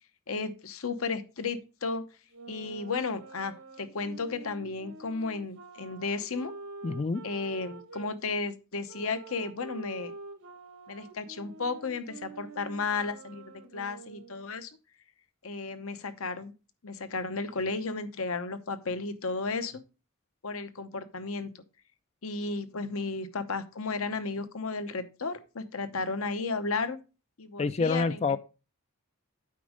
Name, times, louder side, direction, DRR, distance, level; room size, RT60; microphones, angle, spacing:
voice 1, 0.3-2.0 2.5-6.5 7.2-10.1 10.9-13.4 13.7-14.7 15.4-16.5 16.8-19.8 20.4-21.5 22.2-27.0 27.4-28.2, left 4 dB, 70° left, 0.9 m, -33 dB
sound 1, 2.3-8.1 8.9-14.5, right 4 dB, 85° right, 1.5 m, -47 dB
voice 2, 6.8-7.2 27.6-28.4, left 4 dB, 30° left, 0.4 m, -27 dB
8.5 x 5.3 x 5.0 m
head